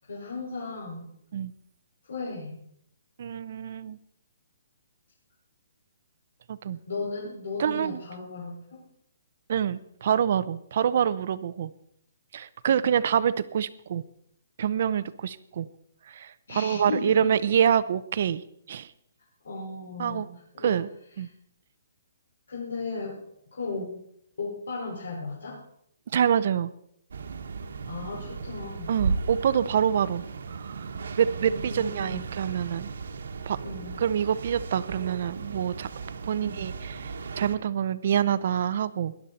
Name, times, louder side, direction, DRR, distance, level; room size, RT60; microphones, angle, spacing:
voice 1, 0.0-1.1 2.0-2.6 6.9-8.6 16.5-17.3 19.4-20.3 20.5-20.8 22.5-23.2 23.5-23.9 24.4-25.6 27.8-28.9 31.4-32.3 33.6-33.9 36.4-36.6, left 3 dB, 80° left, -4 dB, 4.9 m, -35 dB
voice 2, 3.2-4.0 6.5-6.8 7.6-8.0 9.5-11.7 12.3-14.0 14.6-15.7 16.1-18.4 18.7-18.9 20.0-20.3 20.6-20.9 21.2-21.3 26.1-26.7 28.9-30.2 30.5-30.9 31.2-32.9 33.5-33.6 34.0-35.9 36.2-39.1, right 8 dB, 35° right, 15 dB, 0.6 m, -26 dB
sound 1, 27.1-37.6, right 4 dB, 60° right, 1.3 m, -36 dB
19.0 x 11.5 x 4.2 m, 0.71 s
hypercardioid pair, 180°, 0 cm